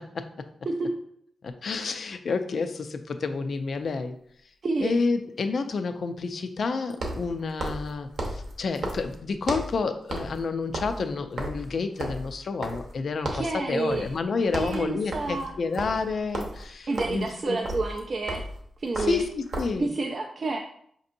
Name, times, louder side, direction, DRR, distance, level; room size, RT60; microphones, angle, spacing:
voice 1, 1.4-4.1 4.8-17.6 19.0-19.3 19.6-19.9, left 4 dB, 55° left, 8 dB, 0.3 m, -29 dB
sound 1, 3.6-3.7 6.9-9.8 10.1-10.4 10.7-13.0 13.2-13.6 13.9-14.2 14.4-19.8, right 1 dB, 65° right, 0.7 m, -34 dB
voice 2, 4.6-4.9 13.3-14.1 14.5-15.5 16.9-18.4 18.8-19.2 19.8-20.6, right 3 dB, 45° right, 1 dB, 0.3 m, -29 dB
5.1 x 2.7 x 2.6 m, 0.67 s
wide cardioid pair, 145°, 0 cm